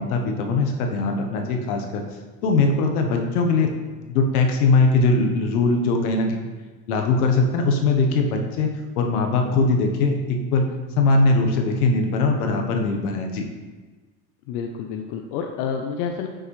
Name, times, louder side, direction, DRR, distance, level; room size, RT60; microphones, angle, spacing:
voice 1, 0.0-2.0 2.4-6.4 6.9-8.7 9.0-10.7 11.0-13.5, left 3 dB, 85° left, 3 dB, 1.2 m, -21 dB
voice 2, 14.5-16.3, left 6 dB, 65° left, 4 dB, 0.8 m, -29 dB
8.0 x 6.3 x 3.2 m, 1.3 s
supercardioid pair, 110°, 44 cm